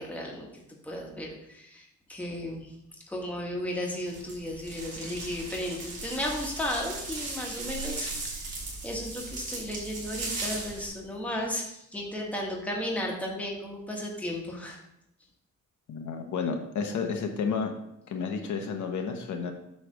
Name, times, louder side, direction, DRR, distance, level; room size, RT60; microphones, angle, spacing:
voice 1, 0.0-2.7 3.1-14.8, left 1 dB, 5° left, -1 dB, 1.2 m, -34 dB
sound 1, 4.1-10.9, right 3 dB, 50° right, 2.9 m, -37 dB
voice 2, 15.9-17.7 18.1-19.5, left 5 dB, 65° left, 4 dB, 0.9 m, -31 dB
8.2 x 3.2 x 6.3 m, 0.80 s
wide cardioid pair, 180°, 32 cm